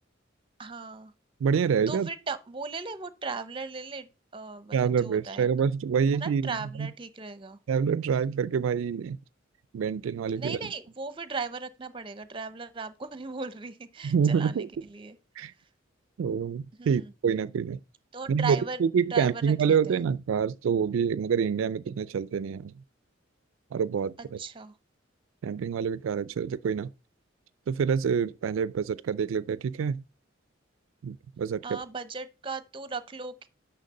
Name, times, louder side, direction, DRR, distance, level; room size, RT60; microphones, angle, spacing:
voice 1, 0.6-1.1 1.9-5.5 6.2-7.6 10.4-15.2 16.8-17.1 18.1-18.8 19.1-20.0 24.2-24.8 31.6-33.5, right 4 dB, 25° right, 0.7 m, -37 dB
voice 2, 1.4-2.1 4.7-6.9 7.7-9.2 9.7-10.7 14.0-14.7 15.4-15.5 16.2-17.8 18.3-22.7 23.7-24.4 25.4-26.9 27.7-30.0 31.0-31.8, right 6 dB, 85° right, 0.3 m, -27 dB
6.5 x 5.9 x 5.2 m
head